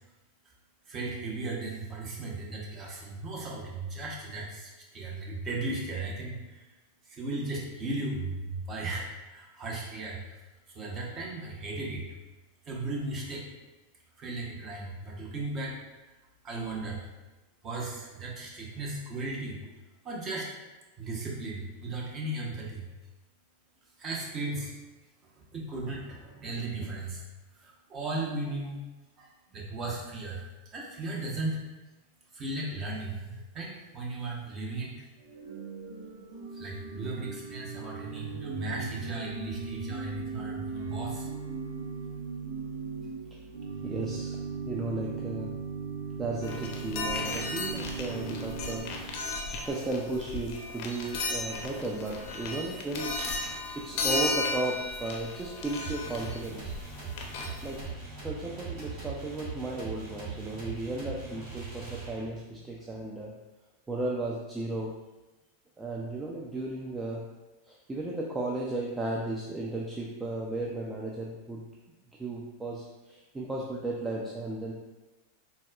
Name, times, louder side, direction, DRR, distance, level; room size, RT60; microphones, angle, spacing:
voice 1, 0.9-6.4 7.1-10.2 10.7-12.0 12.7-13.5 14.2-15.7 16.4-17.0 17.6-19.6 20.0-20.5 21.0-22.8 24.0-24.7 25.5-27.2 27.6-28.8 29.2-30.4 30.7-31.6 32.3-34.9 36.5-41.3, right 2 dB, 35° right, -3 dB, 0.9 m, -36 dB
Organ / Church bell, 35.2-49.3, right 5 dB, 85° right, 0.7 m, -38 dB
voice 2, 43.8-44.4 44.7-45.6 46.2-48.9 49.5-53.3 53.7-56.7 57.6-57.9 58.2-63.3 63.9-65.0 65.8-67.3 67.7-71.6 72.2-74.7, right 2 dB, 15° right, -3 dB, 0.4 m, -35 dB
sound 1, 46.4-57.9, left 3 dB, 55° left, 0.5 m, -35 dB
sound 2, 55.8-62.5, right 5 dB, 55° right, 1.1 m, -40 dB
4.0 x 2.2 x 2.4 m, 1.1 s
hypercardioid pair, 110°, 0 cm